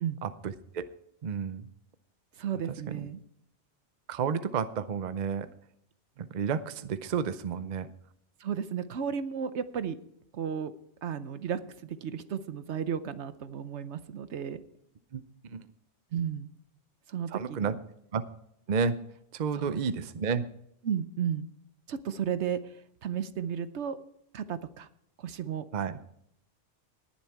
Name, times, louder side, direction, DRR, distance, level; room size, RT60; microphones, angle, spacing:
voice 1, 0.2-0.9 1.2-1.7 4.1-5.5 6.2-7.9 15.1-15.7 17.3-17.7 18.1-18.2 18.7-19.0 19.3-20.4 25.7-26.0, right 6 dB, 45° right, 12 dB, 0.7 m, -31 dB
voice 2, 2.4-3.2 8.4-10.0 10.3-10.7 11.0-14.6 16.1-16.5 17.1-17.8 19.5-19.8 20.8-21.5 21.9-24.0 24.3-24.9 25.2-25.6, right 8 dB, 75° right, 12 dB, 1.1 m, -34 dB
19.0 x 7.2 x 4.7 m, 0.73 s
omnidirectional pair, 1.2 m